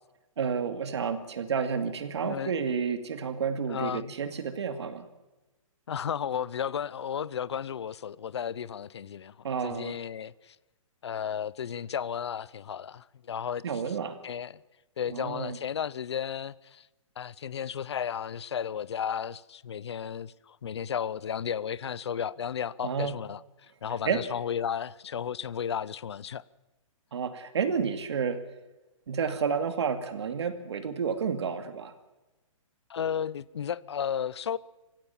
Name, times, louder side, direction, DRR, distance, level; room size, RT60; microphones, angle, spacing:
voice 1, 0.4-5.1 9.4-10.0 13.6-14.2 15.1-15.6 22.8-23.1 24.1-24.2 27.1-28.4 29.1-31.9, right 6 dB, 55° right, 2.4 m, -30 dB
voice 2, 2.2-2.5 3.7-4.1 5.9-9.4 9.6-10.6 11.0-14.0 14.2-14.6 15.0-16.9 17.2-26.4 32.9-34.6, left 8 dB, 55° left, 0.7 m, -34 dB
26.0 x 16.5 x 7.3 m
hypercardioid pair, 180°, 17 cm